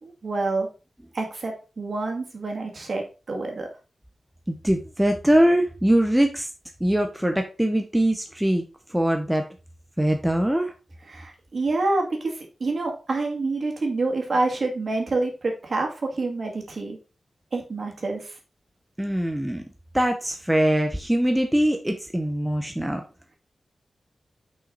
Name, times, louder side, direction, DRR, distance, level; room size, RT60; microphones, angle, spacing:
voice 1, 0.0-0.7 1.1-3.7 11.1-12.3 12.6-17.0 17.5-18.3, right 3 dB, 50° right, 2 dB, 2.0 m, -27 dB
voice 2, 4.5-6.5 6.8-8.6 8.9-9.4 10.0-10.7 19.0-19.6 19.9-23.0, right 1 dB, 5° right, 4 dB, 0.7 m, -22 dB
6.2 x 5.5 x 3.9 m, 0.32 s
wide cardioid pair, 150°, 0 cm